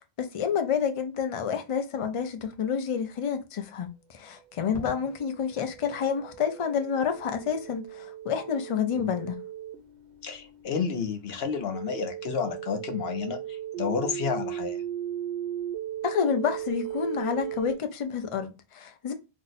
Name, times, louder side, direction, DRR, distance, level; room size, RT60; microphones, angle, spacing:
voice 1, 0.2-9.4 16.0-19.1, left 7 dB, 50° left, 0.4 m, -29 dB
sound 1, 4.5-17.7, right 10 dB, 85° right, 1.0 m, -37 dB
voice 2, 4.6-4.9 8.9-9.2 10.2-14.8, left 6 dB, 70° left, 0.9 m, -31 dB
Crackle, 4.7-5.8 7.4-7.9, left 1 dB, 25° left, 0.8 m, -46 dB
2.6 x 2.1 x 3.9 m
omnidirectional pair, 1.1 m